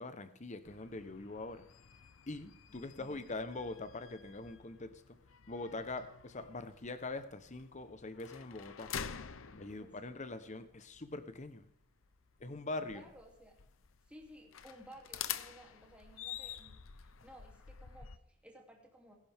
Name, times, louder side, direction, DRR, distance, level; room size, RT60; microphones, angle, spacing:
voice 1, 0.0-1.6 2.3-5.2 5.5-8.9 9.5-11.7 12.4-13.0, left 2 dB, 35° left, 10 dB, 1.0 m, -43 dB
sound 1, 0.6-18.2, left 8 dB, 80° left, 0.8 m, -48 dB
voice 2, 2.7-3.4 9.8-9.9 12.9-13.6 14.1-19.2, equal, 5° right, -1 dB, 2.9 m, -57 dB
19.5 x 11.5 x 3.6 m, 0.71 s
head